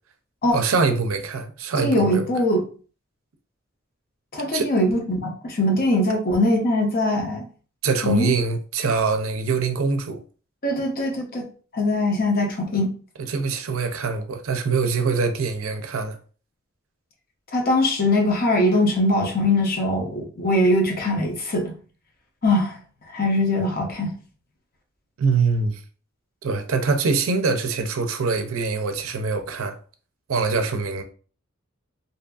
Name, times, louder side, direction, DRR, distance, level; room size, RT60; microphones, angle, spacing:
voice 1, 0.5-2.3 4.5-4.7 7.8-10.2 13.3-16.2 25.2-25.8 26.4-29.8 30.3-31.0, right 4 dB, 80° right, 0.4 m, -24 dB
voice 2, 1.8-2.6 4.3-7.4 8.0-8.3 10.6-11.4 11.7-12.9 17.5-21.7 22.4-22.8 23.1-24.1, left 1 dB, 45° left, 0.7 m, -21 dB
2.7 x 2.4 x 2.3 m
head